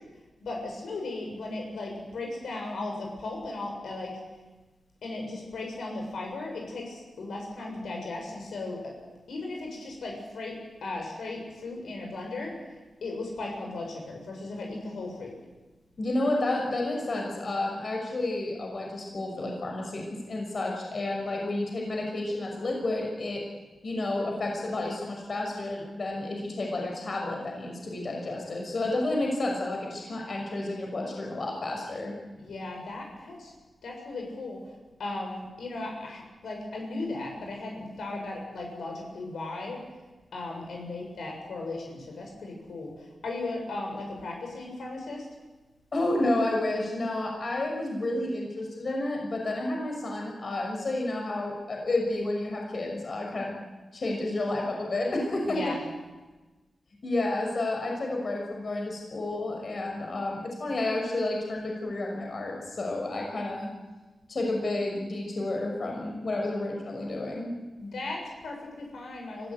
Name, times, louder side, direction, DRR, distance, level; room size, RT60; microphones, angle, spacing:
voice 1, 0.4-4.2 5.0-8.9 9.3-10.5 10.8-12.5 13.0-15.4 32.4-33.5 33.8-34.7 35.0-39.8 40.3-45.3 55.4-55.8 67.8-69.5, left 2 dB, 85° left, 1 dB, 7.1 m, -36 dB
voice 2, 16.0-23.4 23.8-32.1 45.9-53.5 53.9-55.6 57.0-63.7 64.3-67.5, left 2 dB, 50° left, 1 dB, 5.9 m, -30 dB
24.0 x 16.0 x 9.6 m, 1.2 s
wide cardioid pair, 85°, 0 cm